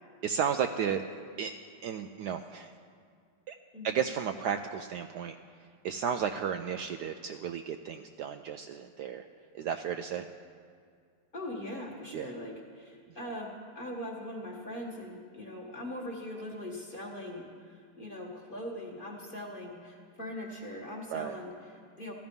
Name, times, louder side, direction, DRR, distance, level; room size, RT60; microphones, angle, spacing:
voice 1, 0.2-1.0 1.4-1.5 1.8-2.7 3.5-3.6 3.8-9.2 9.5-10.3 12.1-12.3 21.1-21.4, right 8 dB, 75° right, 7 dB, 1.0 m, -33 dB
voice 2, 11.3-22.1, left 1 dB, 30° left, 0 dB, 1.5 m, -41 dB
14.5 x 13.5 x 5.3 m, 2.2 s
omnidirectional pair, 2.1 m